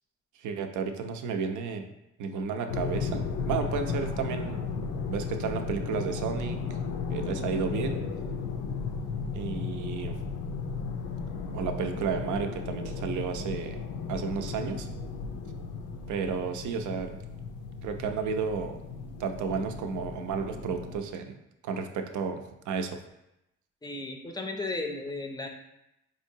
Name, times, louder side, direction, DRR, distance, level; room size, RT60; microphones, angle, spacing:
voice 1, 0.4-1.8 2.2-4.6 5.1-6.6 7.1-8.1 9.3-10.1 11.5-13.8 14.1-14.9 16.1-17.2 17.8-18.8 19.2-21.4 21.6-23.0, right 6 dB, 75° right, 6 dB, 0.5 m, -32 dB
sound 1, 2.7-21.0, left 5 dB, 90° left, 0.5 m, -35 dB
voice 2, 23.8-25.5, left 2 dB, 15° left, 4 dB, 0.5 m, -34 dB
4.3 x 2.7 x 2.7 m, 0.87 s
cardioid pair, 90°, 30 cm